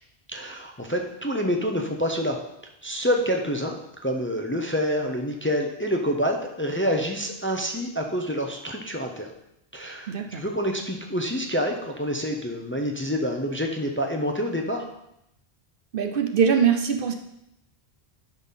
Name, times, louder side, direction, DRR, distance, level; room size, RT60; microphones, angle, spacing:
voice 1, 0.3-2.4 2.8-3.7 4.0-9.3 9.7-14.8, equal, 15° left, 2 dB, 0.7 m, -27 dB
voice 2, 10.1-10.4 15.9-17.2, right 7 dB, 60° right, 6 dB, 0.9 m, -22 dB
11.5 x 4.0 x 5.6 m, 0.82 s
omnidirectional pair, 1.1 m